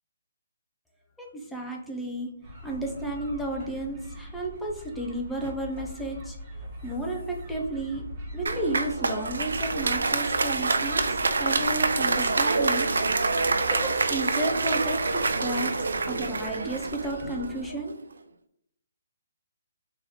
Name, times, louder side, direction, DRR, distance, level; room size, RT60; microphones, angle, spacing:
voice 1, 1.2-2.3 2.6-8.0 8.3-12.9 13.6-15.7 16.1-17.9, right 1 dB, ahead, -1 dB, 0.5 m, -32 dB
sound 1, 2.4-17.7, equal, 20° right, 1.2 m, -41 dB
Applause, 8.5-17.8, right 3 dB, 90° right, 0.5 m, -26 dB
3.9 x 2.9 x 4.1 m, 0.72 s
hypercardioid pair, 175°, 0 cm